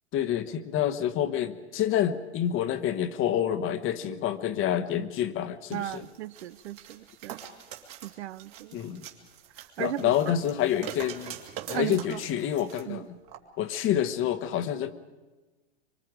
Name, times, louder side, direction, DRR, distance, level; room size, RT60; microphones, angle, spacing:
voice 1, 0.1-6.0 8.7-9.0 9.8-11.3 11.7-13.2 13.6-14.9, left 10 dB, 35° left, 11 dB, 1.2 m, -28 dB
sound 1, 5.7-12.8 13.3-13.4, right 10 dB, 50° right, 2.6 m, -44 dB
voice 2, 5.7-7.4 8.0-8.8 9.8-10.1 11.7-12.2 12.9-13.1, right 13 dB, 70° right, 16 dB, 0.7 m, -36 dB
25.0 x 24.0 x 5.0 m, 1.2 s
hypercardioid pair, 105°, 34 cm